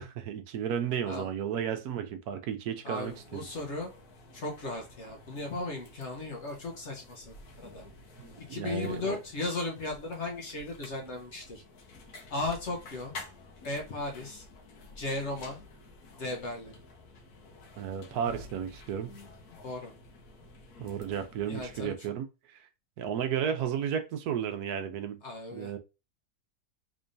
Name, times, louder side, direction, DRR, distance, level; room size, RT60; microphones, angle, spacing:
voice 1, 0.0-3.4 8.2-9.2 17.8-19.1 20.8-22.3 23.0-25.2 25.5-25.8, right 8 dB, 75° right, 1.2 m, -33 dB
voice 2, 2.8-3.9 4.3-7.3 7.7-7.8 8.5-11.6 12.3-13.1 13.6-14.4 15.0-15.6 16.2-16.7 19.6-19.9 21.5-21.9 25.2-25.7, left 2 dB, 50° left, 1.1 m, -36 dB
sound 1, 3.0-21.9, left 2 dB, 75° left, 1.4 m, -50 dB
3.7 x 3.4 x 2.6 m
omnidirectional pair, 1.6 m